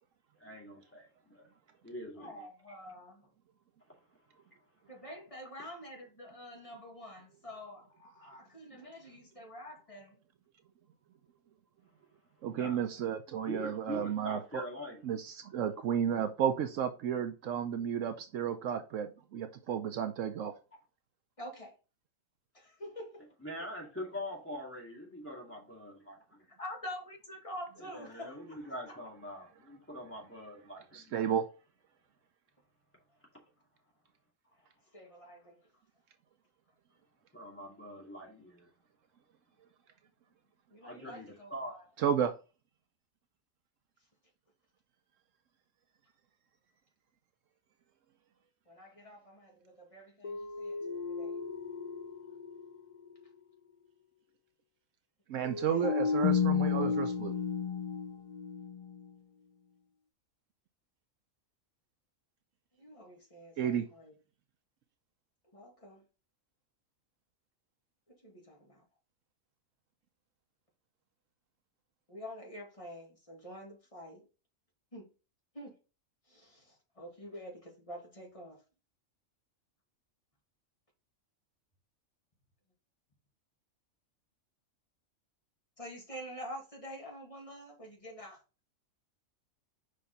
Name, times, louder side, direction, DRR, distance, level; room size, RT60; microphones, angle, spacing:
voice 1, 0.4-1.5 1.8-2.5 8.7-8.9 12.5-12.8 13.4-15.0 23.4-26.4 27.8-31.2 37.3-38.7 40.8-41.7, equal, 10° left, 2.4 m, -44 dB
voice 2, 2.2-3.3 4.9-10.2 21.4-21.7 22.5-23.2 26.6-28.6 28.9-29.0 34.9-35.6 40.7-41.9 48.7-51.4 55.5-56.0 62.8-64.1 65.5-66.0 68.1-68.8 72.1-74.2 74.9-75.1 75.5-75.8 76.3-78.6 85.8-88.4, equal, 25° left, 2.2 m, -47 dB
voice 3, 12.4-14.6 15.0-20.5 30.9-31.5 42.0-42.3 55.3-57.3 63.6-63.9, right 8 dB, 75° right, 1.0 m, -32 dB
sound 1, 50.2-52.8 53.1-53.2 55.4-59.1, left 6 dB, 60° left, 0.3 m, -33 dB
5.6 x 5.0 x 4.0 m
omnidirectional pair, 1.4 m